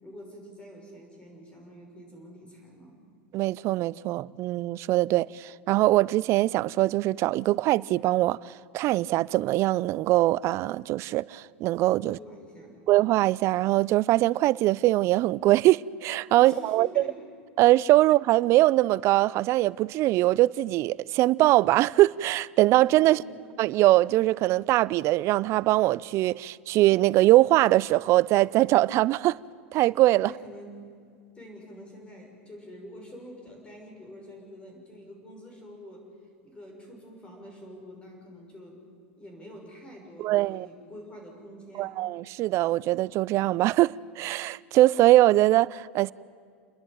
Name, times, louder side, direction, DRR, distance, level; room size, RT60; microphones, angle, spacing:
voice 1, 0.0-3.0 12.0-12.9 16.4-17.3 23.0-23.4 30.2-30.8 31.3-36.1 36.4-38.8 39.2-42.0, equal, 15° left, 6.1 m, -46 dB
voice 2, 3.3-12.2 12.9-17.0 17.6-23.2 23.6-29.4 29.7-30.3 40.2-40.7 41.8-46.1, right 17 dB, 45° right, 0.4 m, -22 dB
29.5 x 11.0 x 9.2 m
hypercardioid pair, 110°, 7 cm